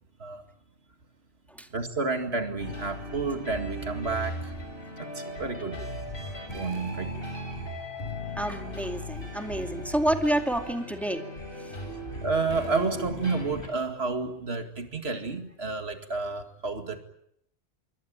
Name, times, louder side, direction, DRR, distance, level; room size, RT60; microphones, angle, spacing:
voice 1, 1.7-4.5 5.0-5.8 6.2-7.1 12.2-17.0, right 3 dB, 85° right, 6 dB, 2.5 m, -30 dB
sound 1, 2.6-13.7, equal, 60° left, 6.8 m, -37 dB
voice 2, 8.4-11.3, right 1 dB, ahead, 5 dB, 2.2 m, -28 dB
26.5 x 24.0 x 8.8 m, 0.73 s
omnidirectional pair, 1.0 m